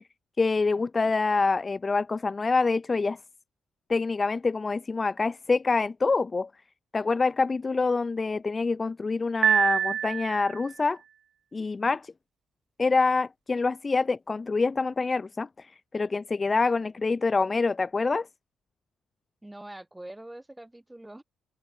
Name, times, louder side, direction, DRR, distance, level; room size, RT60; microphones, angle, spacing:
voice 1, 0.4-3.2 3.9-6.5 6.9-11.0 11.5-12.1 12.8-18.3, left 4 dB, 30° left, 0.4 m, -26 dB
Piano, 9.4-10.7, right 9 dB, 65° right, 0.5 m, -25 dB
voice 2, 19.4-21.2, right 1 dB, 10° right, 3.2 m, -44 dB
cardioid pair, 90°, 0 cm